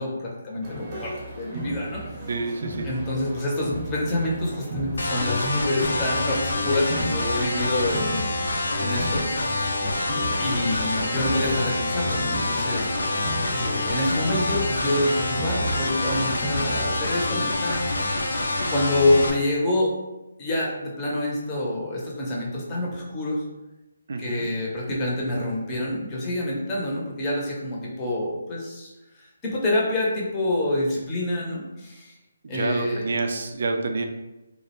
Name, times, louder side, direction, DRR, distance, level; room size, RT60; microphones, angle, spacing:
voice 1, 0.0-2.0 2.8-9.5 10.4-13.2 13.5-19.9 20.4-23.4 24.2-28.9 29.2-32.1 32.5-33.1, left 1 dB, 20° left, -4 dB, 0.6 m, -27 dB
sound 1, 0.6-17.4, right 2 dB, 25° right, 0.7 m, -35 dB
voice 2, 2.3-2.9 24.1-24.5 32.5-34.1, right 3 dB, 60° right, 5 dB, 0.3 m, -28 dB
sound 2, 5.0-19.3, left 2 dB, 80° left, 0.4 m, -27 dB
2.4 x 2.0 x 3.0 m, 1.0 s
figure-of-eight pair, 150°, 0 cm